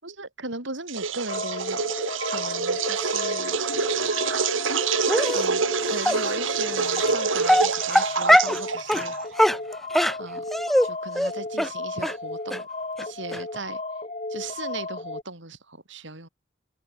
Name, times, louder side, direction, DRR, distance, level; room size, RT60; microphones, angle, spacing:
voice 1, 0.0-1.9 2.3-3.6 5.3-9.5 10.2-10.4 10.8-12.7 13.0-13.8 14.3-16.3, right 3 dB, 70° right, 4.6 m, -37 dB
sound 1, 0.9-9.4, right 5 dB, 85° right, 2.0 m, -27 dB
sound 2, 1.3-15.2, left 2 dB, 35° left, 3.7 m, -34 dB
Dog, 5.1-5.4 6.0-6.2 7.0-7.1 7.4-8.6 8.9-9.1 9.4-10.9 11.2-11.3 11.6-11.7 12.0-12.1 12.5-12.6 13.0-13.1 13.3-13.4, equal, ahead, 0.3 m, -20 dB
head